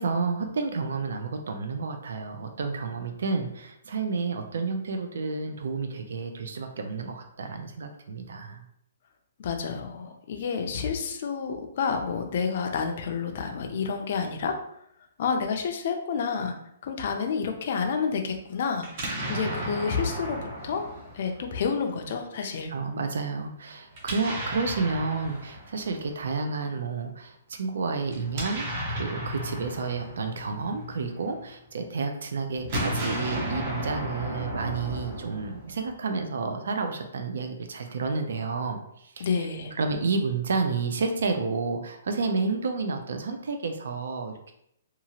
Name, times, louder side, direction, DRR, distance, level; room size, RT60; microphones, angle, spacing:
voice 1, 0.0-8.6 22.7-39.5 39.7-44.5, right 4 dB, 65° right, 5 dB, 0.4 m, -30 dB
voice 2, 9.4-14.6 15.2-16.5 16.8-20.4 20.6-20.9 21.1-22.7 39.2-39.8, left 5 dB, 40° left, 4 dB, 0.4 m, -29 dB
Explosion, 18.8-21.8 23.9-26.2 28.0-31.5 32.5-35.9, right 1 dB, 30° right, 0.6 m, -34 dB
2.8 x 2.4 x 2.7 m, 0.74 s
hypercardioid pair, 175°, 0 cm